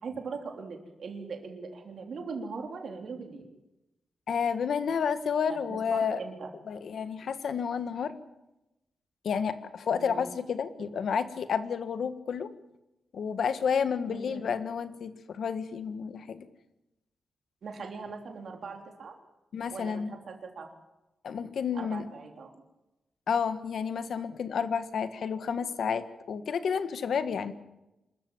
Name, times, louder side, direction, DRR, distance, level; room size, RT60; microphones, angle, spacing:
voice 1, 0.0-3.5 5.7-6.5 10.0-10.2 10.9-11.0 14.1-14.4 17.6-19.1 19.7-20.7 21.7-22.5, right 4 dB, 60° right, 2 dB, 3.4 m, -40 dB
voice 2, 4.3-6.2 6.7-8.1 9.2-12.5 13.1-16.4 19.5-20.1 21.2-22.0 23.3-27.5, left 6 dB, 70° left, 10 dB, 1.5 m, -30 dB
26.5 x 14.0 x 9.1 m, 0.95 s
wide cardioid pair, 165°, 0 cm